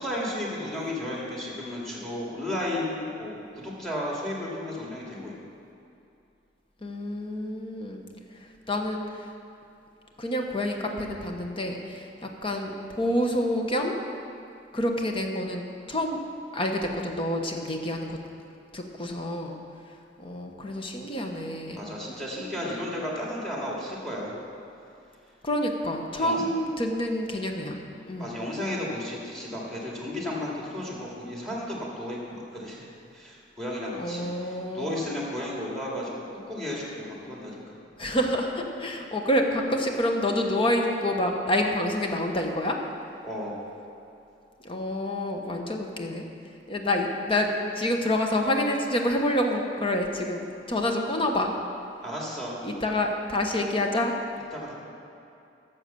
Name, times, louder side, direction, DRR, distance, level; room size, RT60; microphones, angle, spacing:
voice 1, 0.0-5.3 21.8-24.4 26.2-26.5 28.2-32.9 33.1-36.1 36.5-37.8 43.2-43.7 52.0-52.7 54.5-54.7, left 1 dB, 5° left, -4 dB, 2.4 m, -33 dB
voice 2, 6.8-8.0 8.3-9.3 10.2-14.0 14.7-16.2 16.5-18.2 18.7-19.6 20.2-21.8 25.4-27.8 28.1-28.4 34.0-34.9 38.0-42.8 44.6-46.3 46.7-51.5 52.6-54.2, left 1 dB, 30° left, 2 dB, 1.1 m, -28 dB
11.5 x 7.3 x 6.9 m, 2.6 s
head